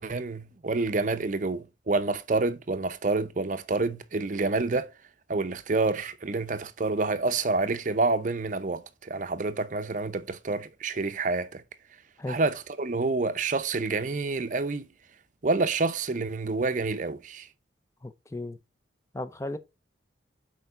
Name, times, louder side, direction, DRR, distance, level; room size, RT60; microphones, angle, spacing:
voice 1, 0.0-4.9 5.3-11.6 12.3-14.9 15.4-17.5, right 3 dB, 45° right, 0.6 m, -28 dB
voice 2, 18.0-18.6 19.1-19.6, left 2 dB, 15° left, 0.6 m, -35 dB
6.9 x 4.5 x 5.0 m
head